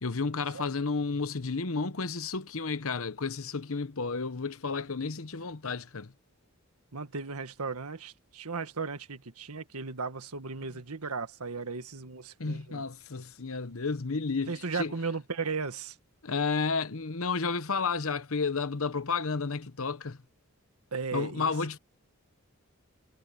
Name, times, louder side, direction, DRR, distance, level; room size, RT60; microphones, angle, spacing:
voice 1, 0.0-6.1 12.4-14.9 16.2-20.2 21.1-21.8, left 4 dB, 70° left, 1.0 m, -32 dB
voice 2, 6.9-12.8 14.5-15.9 20.9-21.5, right 4 dB, 85° right, 1.7 m, -36 dB
head